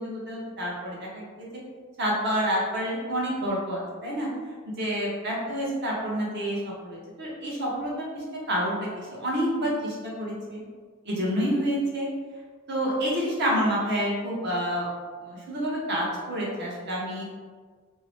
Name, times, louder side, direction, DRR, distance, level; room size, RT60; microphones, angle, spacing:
voice 1, 0.0-1.5 2.0-4.3 4.8-10.6 11.0-12.1 12.7-14.8 15.2-17.2, equal, 55° right, -5 dB, 0.8 m, -28 dB
2.7 x 2.0 x 3.0 m, 1.5 s
head